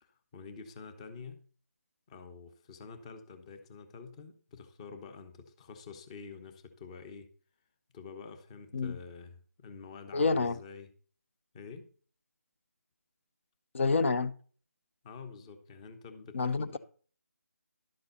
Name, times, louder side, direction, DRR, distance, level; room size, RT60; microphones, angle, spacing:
voice 1, 0.0-1.4 2.1-7.3 7.9-10.9 11.5-11.9 15.0-16.8, left 5 dB, 20° left, 1.1 m, -48 dB
voice 2, 10.1-10.6 13.7-14.3 16.3-16.8, left 4 dB, 45° left, 0.9 m, -28 dB
12.0 x 7.8 x 4.1 m
figure-of-eight pair, 160°, 9 cm